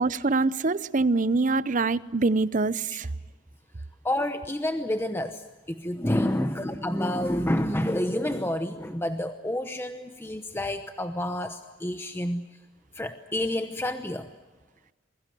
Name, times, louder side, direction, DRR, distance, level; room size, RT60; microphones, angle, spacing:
voice 1, 0.0-3.1, right 3 dB, 40° right, 0.7 m, -24 dB
voice 2, 4.0-12.5 12.9-14.3, left 1 dB, 10° left, 0.9 m, -29 dB
28.0 x 22.0 x 7.7 m
head